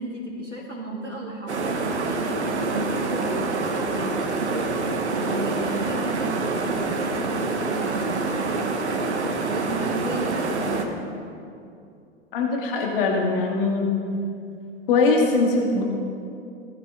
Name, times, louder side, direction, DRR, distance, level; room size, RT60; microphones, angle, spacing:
voice 1, 0.0-2.4 2.7-4.8 5.2-8.7 9.4-11.2, right 2 dB, 85° right, -4 dB, 2.3 m, -33 dB
sound 1, 1.5-10.9, right 3 dB, 70° right, 1.3 m, -26 dB
voice 2, 12.3-13.9 14.9-15.8, left 3 dB, 50° left, -1 dB, 2.4 m, -21 dB
18.0 x 11.0 x 3.7 m, 2.5 s
figure-of-eight pair, 100°, 35 cm